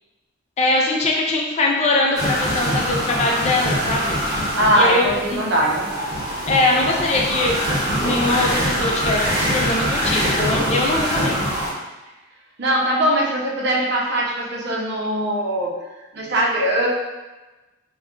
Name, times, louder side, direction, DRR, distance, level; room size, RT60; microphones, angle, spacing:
voice 1, 0.6-4.1 4.7-5.4 6.5-7.6 8.0-11.5, left 2 dB, 30° left, 0 dB, 0.3 m, -21 dB
sound 1, 2.1-11.7, equal, 20° right, 0.9 m, -23 dB
voice 2, 4.5-6.0 12.6-15.7 16.1-16.9, right 1 dB, 55° right, -3 dB, 0.6 m, -21 dB
2.3 x 2.2 x 3.6 m, 1.1 s
head